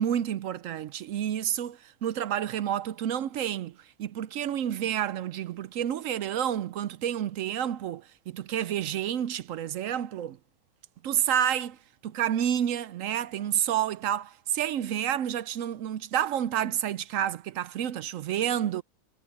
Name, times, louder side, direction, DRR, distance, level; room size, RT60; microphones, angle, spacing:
voice 1, 0.0-10.4 11.0-11.8 12.0-18.8, right 10 dB, 70° right, 0.9 m, -29 dB
omnidirectional pair, 1.6 m